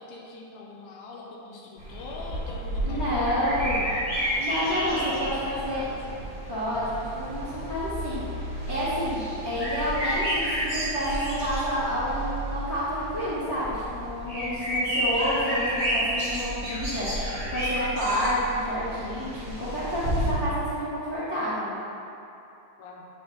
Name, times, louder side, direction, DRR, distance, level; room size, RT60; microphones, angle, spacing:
voice 1, 0.0-4.0 4.7-6.2 9.3-9.5 16.6-16.7 22.8-23.1, left 3 dB, 85° left, -2 dB, 1.9 m, -42 dB
sound 1, 1.8-20.3, equal, 25° right, 0.8 m, -31 dB
voice 2, 2.8-3.9 4.4-5.9 6.5-8.2 8.7-19.3 19.6-21.7, equal, 50° left, -13 dB, 0.8 m, -29 dB
9.4 x 3.4 x 4.1 m, 2.8 s
omnidirectional pair, 3.4 m